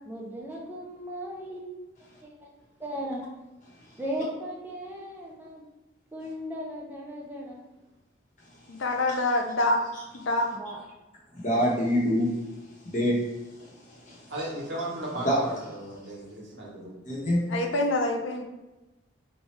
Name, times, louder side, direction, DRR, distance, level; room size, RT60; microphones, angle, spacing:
voice 1, 0.0-1.6 2.0-2.5 2.8-3.2 4.0-5.6 6.1-7.6 10.5-10.8, equal, 10° right, -3 dB, 0.5 m, -37 dB
voice 2, 8.7-9.8 10.1-10.5 17.5-18.4, left 2 dB, 75° left, 4 dB, 0.5 m, -26 dB
voice 3, 11.3-12.3 12.8-13.2 13.9-14.2 15.2-15.4 17.0-17.4, equal, 40° left, -4 dB, 1.0 m, -25 dB
voice 4, 14.3-17.0, right 1 dB, 60° right, -4 dB, 1.1 m, -36 dB
3.2 x 2.3 x 4.1 m, 1.1 s
head